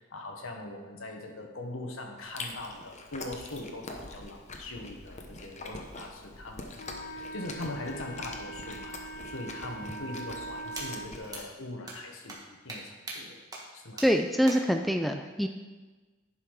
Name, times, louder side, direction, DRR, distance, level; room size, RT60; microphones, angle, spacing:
voice 1, 0.0-6.8 7.0-12.4 12.6-13.4 13.7-14.0, left 2 dB, 90° left, 2 dB, 1.4 m, -41 dB
Chewing mastication, 2.2-11.4, left 3 dB, 35° left, 0.9 m, -44 dB
Wind instrument woodwind instrument, 6.8-11.1, right 2 dB, 50° left, 0.5 m, -42 dB
sound 1, 10.8-10.9 11.3-11.4 11.9-12.0 12.3-12.4 12.7-12.8 13.1-13.2 13.5-13.6 14.0-14.1 14.5-14.6, right 2 dB, 20° right, 1.5 m, -38 dB
voice 2, 14.0-15.5, equal, ahead, 5 dB, 0.3 m, -25 dB
11.0 x 5.7 x 4.8 m, 1.3 s
head